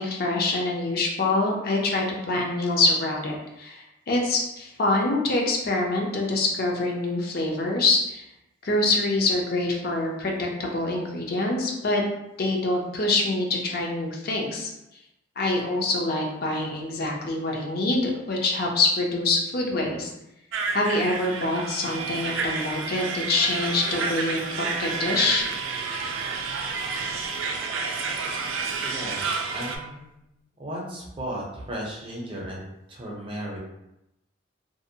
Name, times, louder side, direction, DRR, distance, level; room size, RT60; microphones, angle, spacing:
voice 1, 0.0-8.2 8.6-12.0 12.4-14.7 15.4-20.1 20.7-25.5, left 2 dB, 50° left, 0 dB, 0.5 m, -25 dB
sound 1, 20.5-29.8, right 4 dB, 75° right, 0.3 m, -30 dB
Bowed string instrument, 24.7-29.9, right 9 dB, 85° left, 1.3 m, -43 dB
voice 2, 28.8-32.6 32.9-33.6, equal, 25° right, -3 dB, 0.6 m, -35 dB
2.6 x 2.0 x 2.6 m, 0.88 s
head